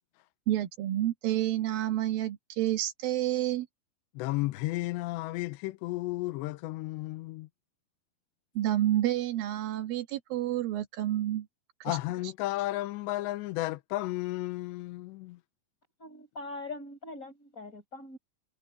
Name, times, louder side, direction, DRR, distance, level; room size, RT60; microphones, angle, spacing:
voice 1, 0.5-3.7 8.5-11.5 11.9-12.0, right 13 dB, 65° right, 3.0 m, -29 dB
voice 2, 4.1-7.5 11.8-15.4, left 18 dB, 90° left, 2.9 m, -33 dB
voice 3, 16.0-18.2, left 2 dB, 20° left, 5.0 m, -42 dB
omnidirectional pair, 5.0 m